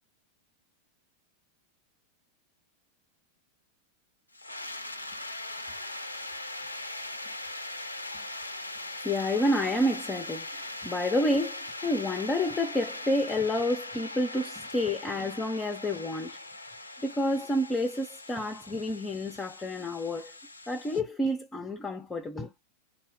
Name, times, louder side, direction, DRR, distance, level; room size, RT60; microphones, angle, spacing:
sound 1, 4.3-21.0, left 2 dB, 85° left, 0.4 m, -40 dB
voice 1, 9.0-16.4 17.0-20.3 20.7-22.5, left 1 dB, 15° left, 0.6 m, -29 dB
3.6 x 2.1 x 3.7 m
figure-of-eight pair, 90°, 0 cm